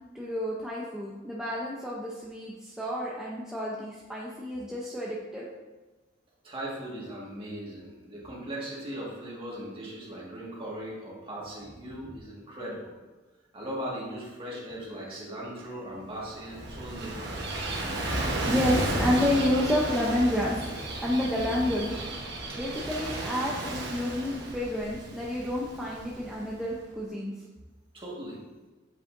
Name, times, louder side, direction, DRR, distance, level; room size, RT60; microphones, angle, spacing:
voice 1, 0.1-5.5 18.5-20.6 21.0-21.9 22.6-27.3, left 1 dB, 5° right, -6 dB, 0.6 m, -29 dB
voice 2, 6.4-12.9 13.5-17.5 22.5-22.6 27.9-28.4, right 1 dB, 30° right, -5 dB, 1.7 m, -38 dB
Gull seagull / Waves surf, 16.2-26.7, right 1 dB, 60° right, 1.1 m, -33 dB
7.7 x 5.5 x 2.6 m, 1.2 s
head